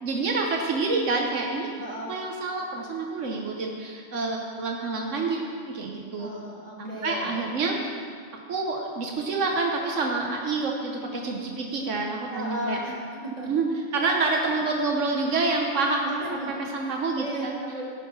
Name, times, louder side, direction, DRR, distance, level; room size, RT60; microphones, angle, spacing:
voice 1, 0.0-1.7 2.1-6.3 6.8-7.8 8.5-12.8 13.5-17.6, right 3 dB, 85° right, 1 dB, 1.3 m, -27 dB
voice 2, 1.8-2.1 6.2-7.4 12.3-12.9 13.2-13.5 16.0-16.3 17.2-17.9, right 1 dB, 35° right, -5 dB, 2.4 m, -34 dB
15.5 x 5.7 x 5.6 m, 2.2 s
omnidirectional pair, 1.2 m